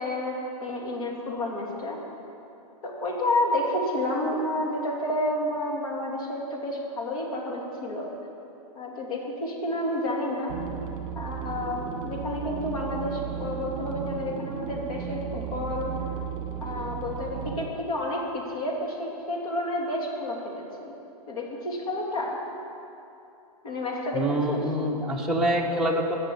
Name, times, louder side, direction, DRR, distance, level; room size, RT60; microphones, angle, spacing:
voice 1, 0.0-2.0 2.8-8.1 8.7-10.5 11.1-16.1 16.6-20.9 21.3-22.4 23.6-24.2 24.5-24.6, left 1 dB, 65° left, -2 dB, 2.9 m, -30 dB
sound 1, 10.5-17.7, right 8 dB, 40° right, 1.3 m, -35 dB
voice 2, 24.1-26.2, right 1 dB, ahead, -3 dB, 1.0 m, -25 dB
14.5 x 6.7 x 8.1 m, 2.8 s
hypercardioid pair, 160°, 20 cm